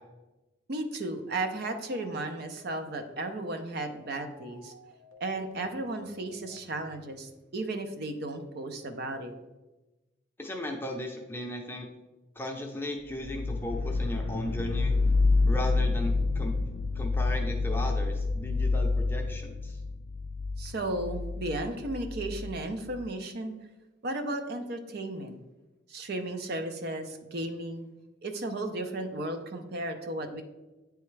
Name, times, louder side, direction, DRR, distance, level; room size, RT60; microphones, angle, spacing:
voice 1, 0.7-4.7 5.2-9.3 20.6-23.5 24.0-25.3 25.9-27.9 28.2-30.4, right 2 dB, 50° right, 6 dB, 0.6 m, -34 dB
sound 1, 1.2-6.6, left 1 dB, 75° right, 1.0 m, -54 dB
voice 2, 10.4-11.9 12.4-14.9 15.5-16.5 17.0-19.8, left 1 dB, 10° left, 2 dB, 0.6 m, -36 dB
sound 2, 13.2-23.1, left 3 dB, 80° left, 0.4 m, -28 dB
9.3 x 3.5 x 3.2 m, 1.1 s
head